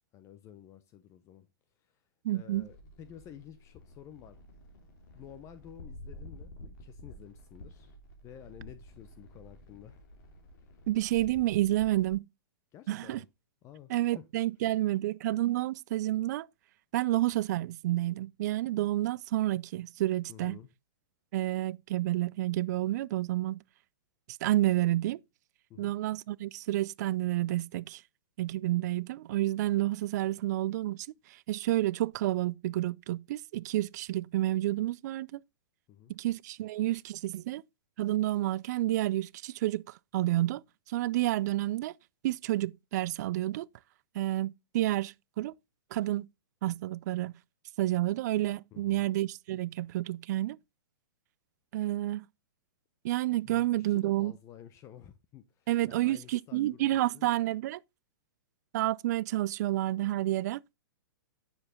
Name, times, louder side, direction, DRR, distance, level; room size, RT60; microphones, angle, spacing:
voice 1, 0.1-1.5 1.8-4.4 5.1-8.0 8.2-10.1 10.6-10.8 12.7-13.3 13.6-14.2 20.3-20.7 25.7-25.9 35.9-36.1 48.7-49.0 53.4-57.3, left 10 dB, 25° left, 0.7 m, -51 dB
voice 2, 2.2-2.7 10.9-12.3 12.9-13.2 13.9-16.5 16.9-20.6 21.3-23.6 24.4-25.2 25.8-28.0 28.4-35.4 36.1-37.6 38.0-40.6 40.9-41.9 42.2-43.7 44.1-45.5 45.9-46.3 46.6-47.3 47.8-50.6 51.7-52.3 53.0-54.3 55.7-57.8 58.7-60.6, right 15 dB, 50° right, 0.4 m, -30 dB
sound 1, 2.5-12.1, left 1 dB, 50° left, 3.1 m, -51 dB
9.6 x 7.0 x 3.7 m
hypercardioid pair, 140°, 12 cm